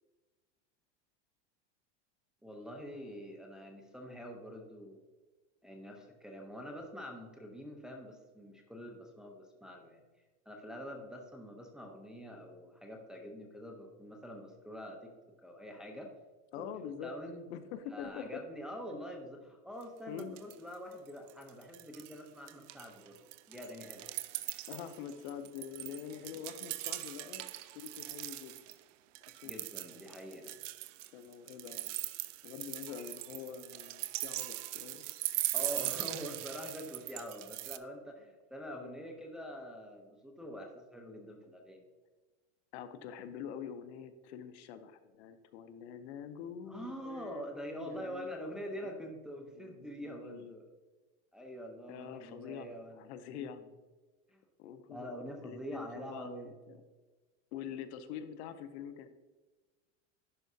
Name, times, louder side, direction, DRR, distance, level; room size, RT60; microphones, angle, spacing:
voice 1, 2.4-5.0 5.6-10.0 10.5-15.1 15.4-16.1 16.6-16.7 17.0-17.4 17.9-23.2 23.5-24.1 29.4-30.6 35.5-41.8 46.7-50.7 51.3-53.0 53.3-53.6 54.3-54.4 54.9-56.5, equal, ahead, 1 dB, 0.6 m, -45 dB
voice 2, 16.5-17.1 17.5-18.4 18.9-19.0 20.1-20.4 24.7-28.6 29.4-29.6 31.1-32.0 32.4-35.0 38.8-39.0 42.7-47.4 47.7-48.3 49.6-50.6 51.9-52.7 53.0-53.6 54.6-55.2 55.4-56.8 57.5-59.1, left 8 dB, 65° left, 10 dB, 0.7 m, -45 dB
sound 1, 19.8-19.9 20.2-20.7 21.1-22.2 22.5-28.7 29.1-37.8, right 17 dB, 90° right, 0.5 m, -40 dB
11.0 x 4.7 x 2.7 m, 1.2 s
supercardioid pair, 150°, 36 cm